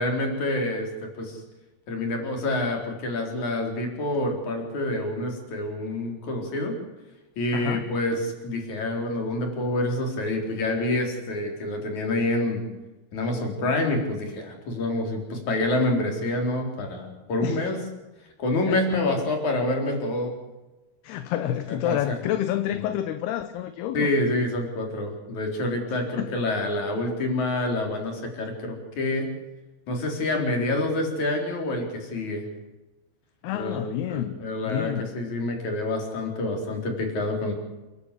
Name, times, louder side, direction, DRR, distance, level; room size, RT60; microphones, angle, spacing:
voice 1, 0.0-1.4 1.9-6.7 7.4-12.6 13.1-17.8 18.4-20.3 21.8-22.2 23.9-29.3 29.9-32.5 33.5-33.8 34.1-37.5, left 2 dB, 45° left, 2 dB, 5.2 m, -27 dB
voice 2, 7.5-7.9 17.4-17.6 18.7-18.8 21.0-24.1 26.2-26.4 33.4-34.4 34.7-35.1, left 11 dB, 75° left, 9 dB, 3.0 m, -28 dB
29.0 x 12.0 x 8.5 m, 1.1 s
omnidirectional pair, 4.8 m